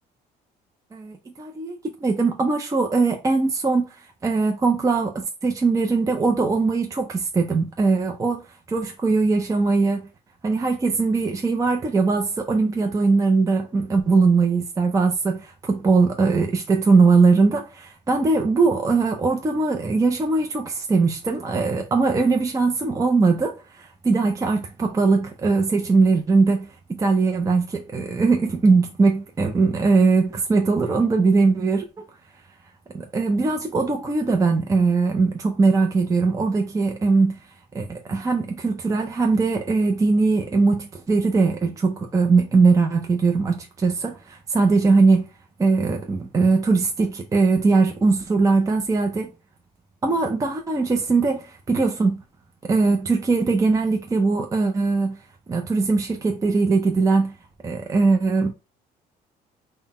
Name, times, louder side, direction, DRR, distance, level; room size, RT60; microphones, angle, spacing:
voice 1, 0.9-3.9 4.2-5.1 5.4-10.1 10.4-32.0 32.9-37.4 37.7-45.2 45.6-49.3 50.0-52.2 52.6-55.2 55.5-57.3 57.6-58.5, right 4 dB, 20° right, 0.5 m, -20 dB
3.8 x 2.1 x 4.1 m
cardioid pair, 110°, 17 cm